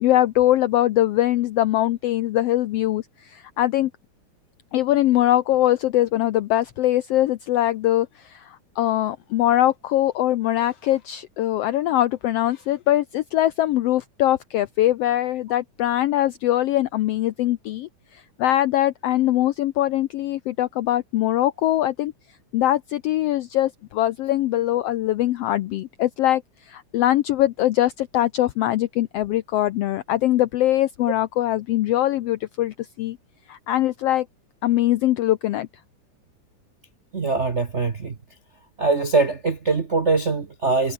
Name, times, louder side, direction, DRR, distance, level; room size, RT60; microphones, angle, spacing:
voice 1, 0.0-3.9 4.7-22.1 22.5-33.2 33.5-34.3 34.6-35.7, left 14 dB, 85° left, 1.3 m, -22 dB
voice 2, 37.1-38.1 38.8-40.9, right 3 dB, 75° right, 0.6 m, -22 dB
omnidirectional pair, 3.6 m